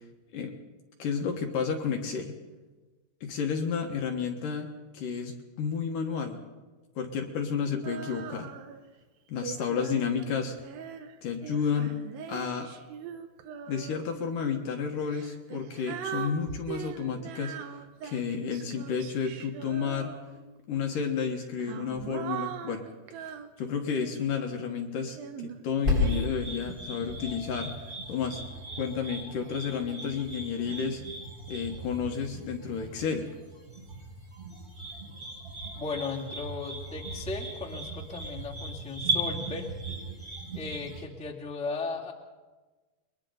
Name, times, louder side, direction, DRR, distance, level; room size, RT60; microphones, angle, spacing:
voice 1, 1.0-2.4 3.2-4.7 4.9-6.4 7.0-8.5 9.3-10.6 11.2-12.0 12.3-12.7 13.7-17.6 18.0-20.1 20.7-22.9 23.2-23.3 23.6-27.8 28.1-28.4 28.8-31.0 31.5-33.3, left 6 dB, 65° left, 3 dB, 2.8 m, -31 dB
Female singing, 7.8-8.9 9.4-14.2 15.0-20.6 21.3-24.5 25.1-26.3, right 8 dB, 75° right, 2.7 m, -41 dB
sound 1, 25.8-41.0, equal, 15° right, 8.0 m, -36 dB
voice 2, 35.7-39.7 40.5-42.1, left 4 dB, ahead, -3 dB, 1.9 m, -36 dB
29.5 x 22.5 x 4.0 m, 1.3 s
omnidirectional pair, 4.4 m